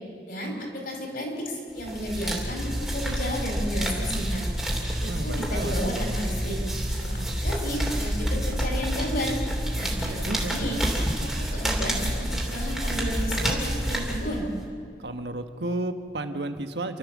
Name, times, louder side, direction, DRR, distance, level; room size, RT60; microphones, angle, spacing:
voice 1, 0.3-4.5 5.0-6.6 7.0-9.4 9.7-10.8 11.2-14.5, equal, 55° left, 1 dB, 5.1 m, -32 dB
Papel quemandose, 1.8-14.6, equal, 5° right, 3.0 m, -28 dB
voice 2, 5.1-6.0 10.0-10.7 15.0-17.0, right 2 dB, 75° right, 8 dB, 1.3 m, -33 dB
29.0 x 13.0 x 7.4 m, 2.4 s
head